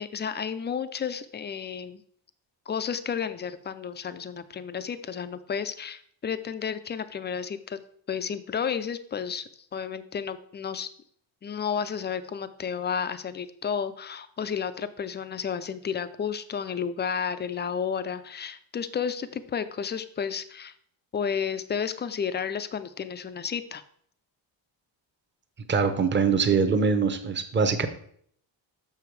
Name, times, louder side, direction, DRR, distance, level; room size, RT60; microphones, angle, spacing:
voice 1, 0.0-2.0 2.7-7.8 8.1-9.4 9.7-10.9 11.4-20.7 21.1-23.8, left 7 dB, 25° left, 12 dB, 0.3 m, -32 dB
voice 2, 25.7-27.9, right 5 dB, 25° right, 7 dB, 0.7 m, -23 dB
6.9 x 6.2 x 4.6 m, 0.62 s
wide cardioid pair, 165°, 47 cm